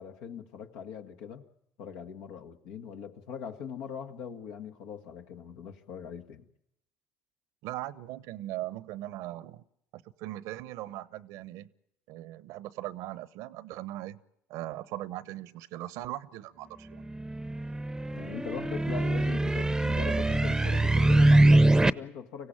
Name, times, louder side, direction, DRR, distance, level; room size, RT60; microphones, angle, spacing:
voice 1, 0.0-1.5 1.8-6.5 18.1-22.5, left 7 dB, 80° left, 1.8 m, -41 dB
voice 2, 7.6-9.6 9.9-11.7 12.1-14.2 14.5-17.1, right 15 dB, 75° right, 0.9 m, -39 dB
sound 1, 16.9-21.9, right 2 dB, 10° right, 0.8 m, -23 dB
25.0 x 16.5 x 8.8 m
supercardioid pair, 75°, 5 cm